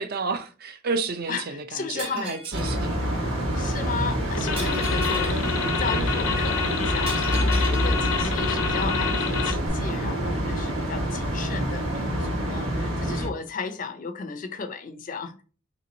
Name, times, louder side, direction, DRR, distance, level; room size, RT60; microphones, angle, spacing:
voice 1, 0.0-3.0 4.0-4.2, right 4 dB, 45° right, 0.4 m, -31 dB
voice 2, 1.3-2.4 3.5-15.4, left 5 dB, 40° left, 0.4 m, -35 dB
Shatter, 2.0-2.8 4.6-5.4 7.1-7.9, right 3 dB, 25° right, 0.8 m, -38 dB
sound 1, 2.5-13.3, equal, 75° right, 1.2 m, -26 dB
sound 2, 4.3-9.7, left 6 dB, 85° left, 0.7 m, -28 dB
3.3 x 3.0 x 3.8 m
head